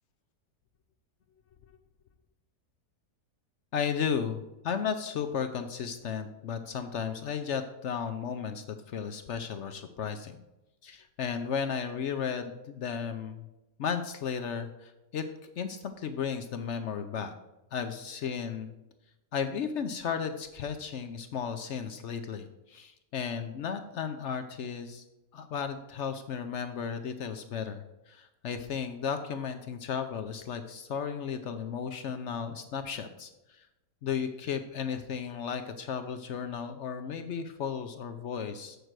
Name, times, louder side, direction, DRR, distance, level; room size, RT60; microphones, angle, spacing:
voice 1, 3.7-10.4 10.8-13.5 13.8-17.3 17.7-18.7 19.3-25.0 25.3-33.7 34.0-38.8, left 7 dB, 65° left, 8 dB, 0.7 m, -34 dB
7.6 x 6.6 x 4.7 m, 0.97 s
omnidirectional pair, 1.7 m